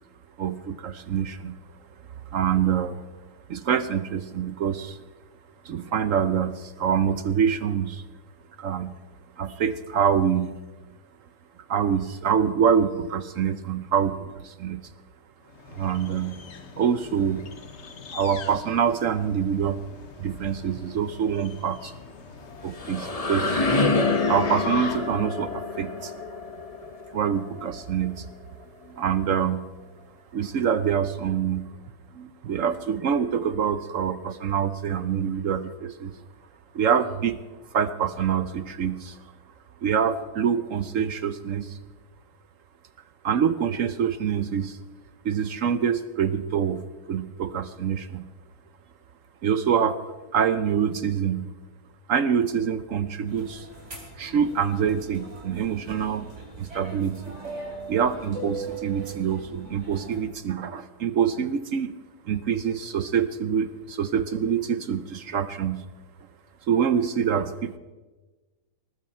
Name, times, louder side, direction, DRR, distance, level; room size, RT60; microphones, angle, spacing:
voice 1, 0.4-1.6 2.3-3.0 3.5-5.0 5.6-8.0 8.6-8.9 9.4-10.6 11.7-14.9 15.7-16.4 16.8-17.5 18.1-19.8 20.2-21.9 22.6-23.6 24.3-26.2 27.1-28.3 28.8-29.7 30.3-31.7 32.1-36.1 36.7-37.4 37.7-39.2 39.8-41.8 43.2-44.8 45.2-48.3 49.4-50.0 50.3-51.5 52.1-53.7 54.2-56.3 56.6-57.4 57.9-61.9 62.2-65.9 66.7-67.8, right 7 dB, 60° right, 13 dB, 0.9 m, -25 dB
sound 1, 15.5-25.3, left 4 dB, 45° left, 1.2 m, -41 dB
sound 2, 22.4-28.2, left 3 dB, 25° left, 1.0 m, -27 dB
sound 3, 53.3-60.2, right 3 dB, 40° right, 4.3 m, -40 dB
19.5 x 14.5 x 4.4 m, 1.2 s
omnidirectional pair, 1.8 m